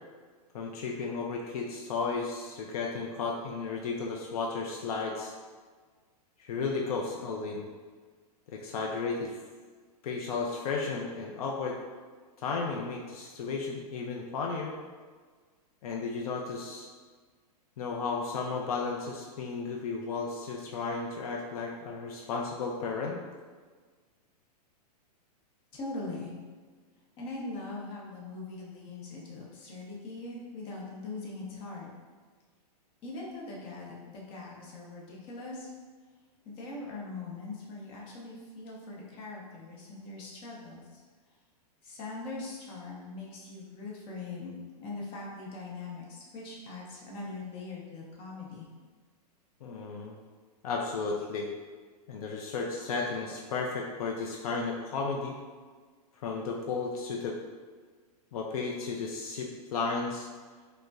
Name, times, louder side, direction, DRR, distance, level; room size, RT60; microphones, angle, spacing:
voice 1, 0.5-5.3 6.4-7.7 8.5-9.4 10.0-11.8 12.4-14.8 15.8-16.9 17.8-23.2 49.6-50.1 50.6-51.5 52.1-55.3 56.2-57.4 58.3-60.3, left 4 dB, 65° left, -1 dB, 0.4 m, -34 dB
voice 2, 25.7-26.3 27.2-31.9 33.0-35.7 36.5-41.0 41.8-48.7, left 3 dB, 25° left, -4 dB, 0.7 m, -41 dB
5.0 x 2.1 x 2.3 m, 1.5 s
supercardioid pair, 155°, 21 cm